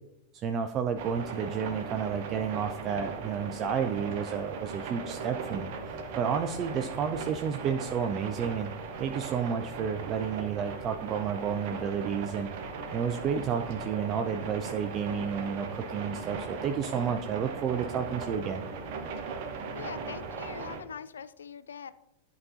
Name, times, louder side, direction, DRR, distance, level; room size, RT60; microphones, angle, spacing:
voice 1, 0.3-8.7 9.0-12.5 12.9-18.6, right 7 dB, 30° right, 6 dB, 0.4 m, -31 dB
sound 1, 1.0-20.8, right 4 dB, 50° right, 0.9 m, -38 dB
voice 2, 19.7-21.9, left 7 dB, 70° left, 14 dB, 0.3 m, -42 dB
11.0 x 4.1 x 2.5 m, 0.87 s
figure-of-eight pair, 90°, 0 cm